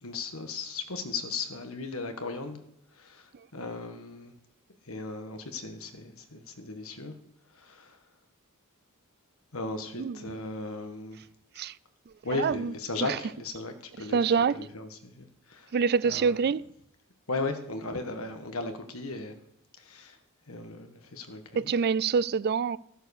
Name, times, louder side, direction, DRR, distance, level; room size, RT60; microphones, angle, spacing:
voice 1, 0.0-2.6 3.0-4.3 4.9-7.1 7.6-8.0 9.5-11.2 12.2-14.2 14.5-15.7 16.0-16.4 17.3-19.3 19.8-20.2 20.5-21.7, left 3 dB, 70° left, 1.7 m, -36 dB
voice 2, 10.0-10.4 11.6-11.7 12.3-12.7 13.0-13.2 14.1-14.6 15.7-16.6 21.5-22.8, right 6 dB, 50° right, 0.4 m, -26 dB
14.0 x 7.9 x 6.6 m
head